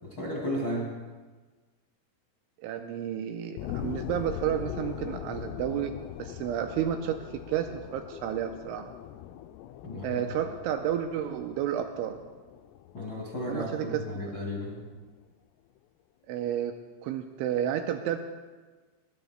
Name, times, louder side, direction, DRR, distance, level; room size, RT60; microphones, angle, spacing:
voice 1, 0.0-0.9 9.8-10.4 12.9-14.8, left 1 dB, 45° left, -5 dB, 1.6 m, -34 dB
voice 2, 2.6-5.9 6.2-8.9 10.0-12.2 13.4-14.3 16.3-16.8 17.0-18.2, right 10 dB, 85° right, 5 dB, 2.8 m, -31 dB
sound 1, 3.6-14.6 15.1-15.2, left 11 dB, 85° left, 3.2 m, -41 dB
22.0 x 21.0 x 2.3 m, 1.3 s
omnidirectional pair, 5.9 m